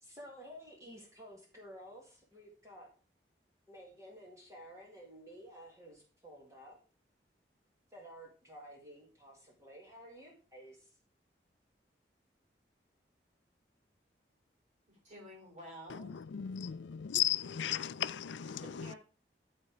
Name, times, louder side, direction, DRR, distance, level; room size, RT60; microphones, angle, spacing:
voice 1, 0.0-2.9 3.7-6.8 7.9-10.9, equal, 15° right, 1.9 m, -52 dB
voice 2, 14.9-16.2 18.4-19.0, equal, 40° right, 3.4 m, -51 dB
voice 3, 15.9-18.9, left 11 dB, 85° left, 0.4 m, -36 dB
11.5 x 4.3 x 4.9 m
head